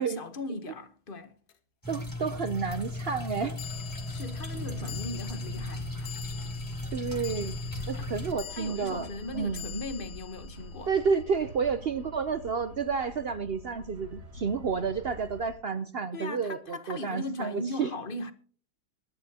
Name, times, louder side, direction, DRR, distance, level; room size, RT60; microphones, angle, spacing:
voice 1, 0.0-1.3 4.0-6.2 7.9-8.1 8.5-10.9 16.1-18.3, left 2 dB, 35° left, 1.1 m, -38 dB
sound 1, 1.5-1.6 3.6-12.0, left 11 dB, 70° left, 1.6 m, -46 dB
sound 2, 1.8-8.3, left 2 dB, 10° left, 2.4 m, -37 dB
voice 2, 1.9-3.6 6.9-7.6 7.9-9.1 9.3-9.8 10.9-17.9, right 5 dB, 60° right, 0.6 m, -30 dB
sound 3, 2.7-15.5, equal, 85° right, 3.2 m, -45 dB
22.5 x 10.5 x 2.8 m
omnidirectional pair, 1.8 m